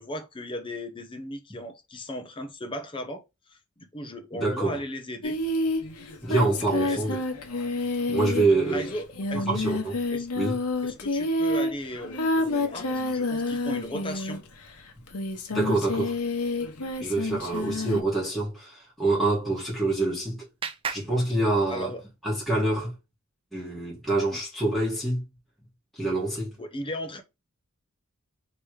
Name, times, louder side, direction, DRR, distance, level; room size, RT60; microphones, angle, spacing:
voice 1, 0.0-3.2 3.5-5.4 6.8-7.2 8.5-9.6 10.1-10.3 10.8-14.4 21.7-22.0 24.3-24.4 26.6-27.2, equal, 25° left, 0.7 m, -37 dB
voice 2, 4.3-4.8 6.2-7.2 8.1-8.9 9.5-9.9 10.3-10.6 15.5-16.2 17.0-20.5 20.9-21.9 22.2-22.9 23.5-25.2 25.9-26.5, right 2 dB, ahead, 1.6 m, -26 dB
Singing, 5.2-14.6 15.1-18.0, left 2 dB, 85° left, 1.0 m, -29 dB
Clapping, 19.5-22.1, right 6 dB, 25° right, 0.4 m, -39 dB
3.4 x 3.0 x 4.7 m
head